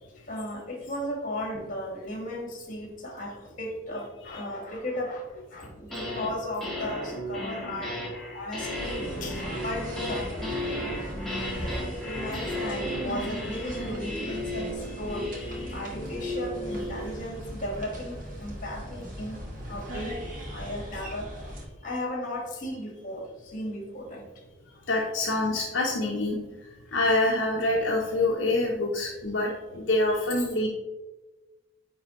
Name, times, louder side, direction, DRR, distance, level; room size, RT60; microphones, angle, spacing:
voice 1, 0.1-10.3 11.2-21.5 21.8-24.2 30.4-30.5, left 1 dB, 40° left, 1 dB, 1.4 m, -36 dB
sound 1, 5.6-6.3 6.6-17.0, left 1 dB, ahead, 1.4 m, -34 dB
sound 2, 8.7-21.7, equal, 45° right, 1.3 m, -39 dB
voice 2, 24.9-26.4 26.9-30.7, left 2 dB, 65° left, -2 dB, 0.7 m, -26 dB
9.3 x 3.4 x 2.9 m, 1.1 s
head